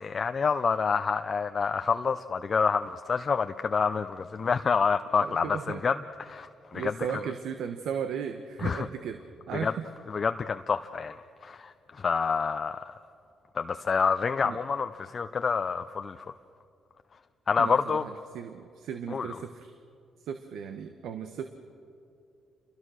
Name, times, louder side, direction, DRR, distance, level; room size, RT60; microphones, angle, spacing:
voice 1, 0.0-6.9 8.6-8.9 9.5-9.7 10.1-12.9 13.6-16.3 17.5-18.0 19.1-19.3, left 5 dB, 40° left, 8 dB, 0.6 m, -28 dB
voice 2, 5.2-5.8 6.7-9.2 9.5-9.8 14.4-14.6 17.6-19.7 20.3-21.5, right 7 dB, 80° right, 7 dB, 1.2 m, -36 dB
28.5 x 22.5 x 6.5 m, 2.5 s
cardioid pair, 90°, 0 cm